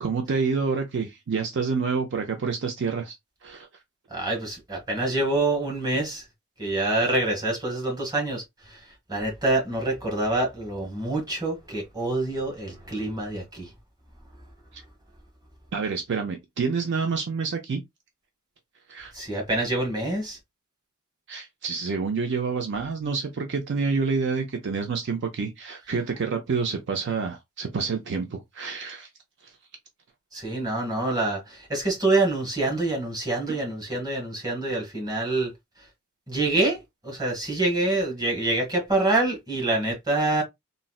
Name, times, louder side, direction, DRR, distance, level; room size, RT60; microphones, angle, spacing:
voice 1, 0.0-3.2 3.4-3.7 15.7-17.8 18.9-19.1 21.3-29.1, right 5 dB, 55° right, 0.5 m, -28 dB
voice 2, 4.1-6.2 6.6-13.7 19.1-20.4 30.3-35.5 36.3-40.4, right 2 dB, 20° right, 1.2 m, -26 dB
3.9 x 2.0 x 2.3 m
head